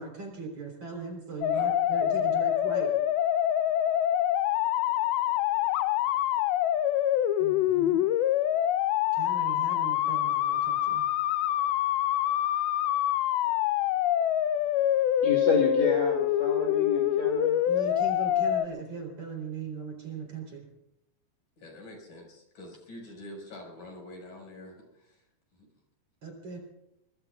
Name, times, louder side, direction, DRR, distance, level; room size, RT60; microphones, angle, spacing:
voice 1, 0.0-2.9 7.4-8.0 9.1-11.0 17.7-20.6 26.2-26.6, right 4 dB, 40° right, 2 dB, 4.5 m, -39 dB
sound 1, 1.4-18.7, left 11 dB, 80° left, 2.4 m, -26 dB
voice 2, 15.2-17.6, left 4 dB, 30° left, 0 dB, 2.5 m, -29 dB
voice 3, 21.6-25.2 25.5-25.7, left 1 dB, 50° left, 1 dB, 6.9 m, -46 dB
25.0 x 22.5 x 2.4 m, 0.85 s
omnidirectional pair, 4.7 m